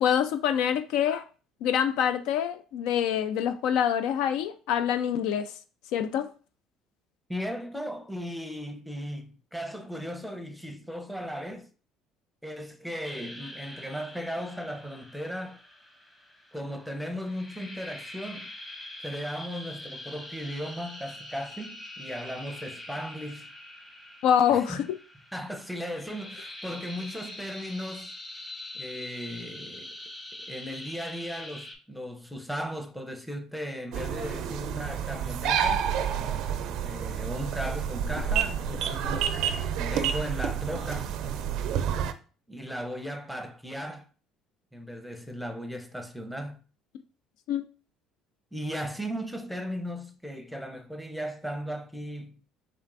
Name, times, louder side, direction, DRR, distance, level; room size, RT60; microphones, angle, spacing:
voice 1, 0.0-1.2 1.6-5.5 5.9-6.3 24.2-24.9 47.5-47.6, left 9 dB, 75° left, 0.3 m, -25 dB
voice 2, 7.3-11.7 12.4-15.6 16.5-18.5 19.0-23.5 24.5-24.8 25.3-28.1 28.7-29.9 30.5-35.9 36.8-39.4 39.7-41.1 42.5-44.1 44.7-46.6 48.5-52.4, equal, ahead, 0.7 m, -36 dB
sound 1, 13.0-31.7, left 1 dB, 15° left, 1.0 m, -44 dB
sound 2, 33.9-42.1, right 8 dB, 70° right, 0.4 m, -29 dB
4.3 x 3.2 x 2.6 m
supercardioid pair, 90°, 0 cm